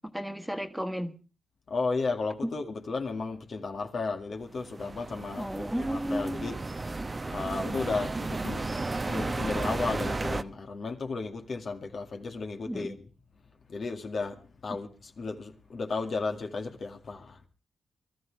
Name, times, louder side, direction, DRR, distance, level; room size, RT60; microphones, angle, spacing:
voice 1, 0.1-1.2 2.4-2.5 5.4-6.5 12.7-13.0, equal, 5° right, 1.7 m, -33 dB
voice 2, 1.7-6.6 7.3-13.1 13.7-17.4, left 4 dB, 60° left, 2.1 m, -34 dB
sound 1, 4.5-10.4, right 3 dB, 30° right, 0.9 m, -33 dB
24.0 x 13.5 x 3.3 m
cardioid pair, 65°, 0 cm